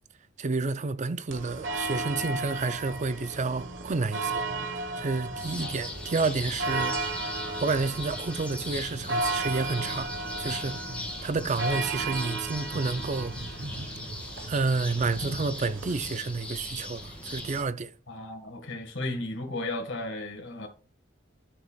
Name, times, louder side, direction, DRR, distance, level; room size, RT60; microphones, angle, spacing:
voice 1, 0.4-7.0 7.6-10.9 11.2-13.3 14.5-17.9, right 3 dB, 40° right, 0.5 m, -30 dB
sound 1, 1.3-16.1, right 3 dB, 75° right, 1.2 m, -35 dB
sound 2, 5.3-17.6, left 2 dB, 5° left, 2.1 m, -39 dB
voice 2, 18.1-20.7, left 2 dB, 70° left, 1.8 m, -35 dB
11.5 x 6.5 x 2.4 m
head